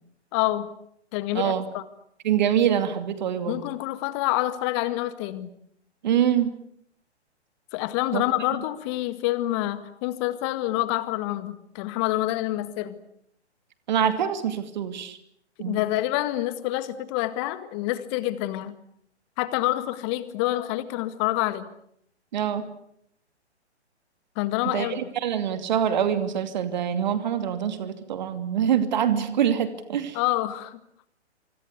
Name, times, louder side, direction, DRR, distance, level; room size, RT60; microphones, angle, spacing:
voice 1, 0.3-0.7 1.1-1.8 3.5-5.5 7.7-13.0 15.7-18.7 19.4-21.7 24.4-25.0 30.1-30.8, left 16 dB, 25° left, 14 dB, 1.9 m, -27 dB
voice 2, 1.3-1.6 2.2-3.6 6.0-6.5 8.1-8.2 13.9-15.2 15.6-15.8 22.3-22.7 24.7-30.2, right 9 dB, 40° right, 10 dB, 2.7 m, -25 dB
25.5 x 25.0 x 8.4 m, 0.71 s
figure-of-eight pair, 130°, 34 cm